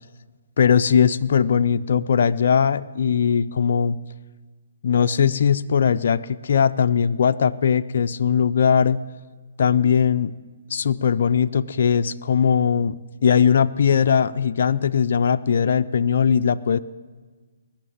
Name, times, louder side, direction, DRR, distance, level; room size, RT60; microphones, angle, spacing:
voice 1, 0.6-4.0 4.8-9.0 9.6-10.3 10.7-13.0 13.2-16.8, left 7 dB, 60° left, 9 dB, 0.5 m, -19 dB
19.5 x 7.3 x 9.3 m, 1.4 s
hypercardioid pair, 140°, 0 cm